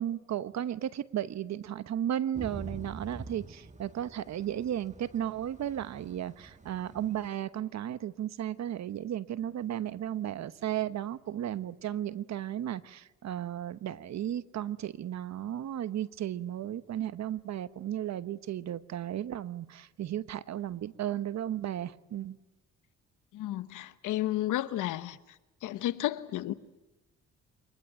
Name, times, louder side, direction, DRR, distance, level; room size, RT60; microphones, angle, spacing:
voice 1, 0.0-22.4, right 11 dB, 60° right, 1.1 m, -34 dB
Thunder / Rain, 2.3-7.3, right 3 dB, 25° right, 1.4 m, -46 dB
voice 2, 23.3-25.2 25.6-26.5, left 14 dB, 85° left, 1.1 m, -32 dB
24.5 x 20.5 x 9.2 m
cardioid pair, 90°, 30 cm